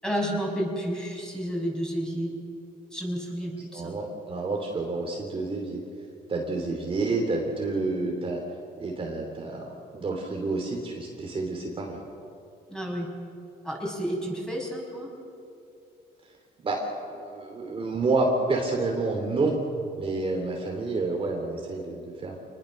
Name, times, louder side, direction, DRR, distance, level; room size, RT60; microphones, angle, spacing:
voice 1, 0.0-2.3 2.9-3.9 12.7-13.1 13.6-15.1, equal, 5° left, -1 dB, 6.4 m, -31 dB
voice 2, 3.7-5.8 6.3-8.4 8.8-9.7 9.9-12.0 16.6-16.9 17.1-19.6 20.0-22.4, right 3 dB, 35° right, 0 dB, 3.2 m, -29 dB
27.0 x 20.5 x 6.7 m, 2.6 s
cardioid pair, 110°, 17 cm